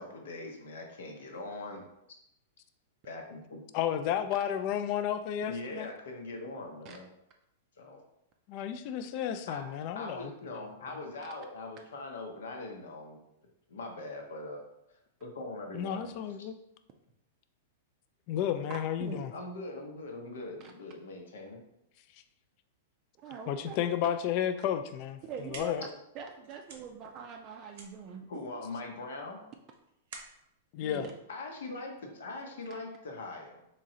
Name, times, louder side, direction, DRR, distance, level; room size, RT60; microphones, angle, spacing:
voice 1, 0.0-1.8 3.0-3.6 5.5-7.1 7.8-8.0 9.5-9.6 9.9-13.2 13.7-14.6 15.2-16.1 19.3-21.6 28.3-29.4 31.3-33.7, left 2 dB, 85° left, 2 dB, 0.8 m, -41 dB
voice 2, 3.7-5.9 8.5-10.3 15.7-16.5 18.3-19.3 23.5-25.2 25.5-25.8 30.7-31.1, left 10 dB, 45° left, 10 dB, 0.3 m, -32 dB
voice 3, 23.2-23.9 25.2-25.9 26.1-28.3 30.8-31.1, right 5 dB, 35° right, 3 dB, 0.3 m, -43 dB
sound 1, 25.1-31.9, right 4 dB, 65° right, 0.7 m, -52 dB
3.7 x 3.1 x 2.7 m, 0.82 s
hypercardioid pair, 140°, 0 cm